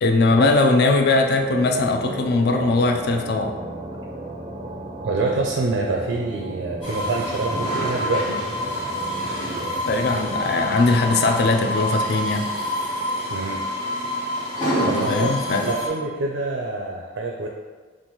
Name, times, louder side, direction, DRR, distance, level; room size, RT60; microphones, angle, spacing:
voice 1, 0.0-3.6 9.9-12.5 14.8-15.7, left 3 dB, 55° left, 4 dB, 0.4 m, -20 dB
sound 1, 0.8-14.0, right 1 dB, 25° right, 0.4 m, -36 dB
voice 2, 5.0-8.4 13.3-13.6 14.9-15.3 15.6-17.5, right 3 dB, 85° right, 1 dB, 0.4 m, -26 dB
sound 2, 6.8-15.9, equal, 25° left, 1.3 m, -27 dB
5.4 x 2.5 x 3.0 m, 1.4 s
head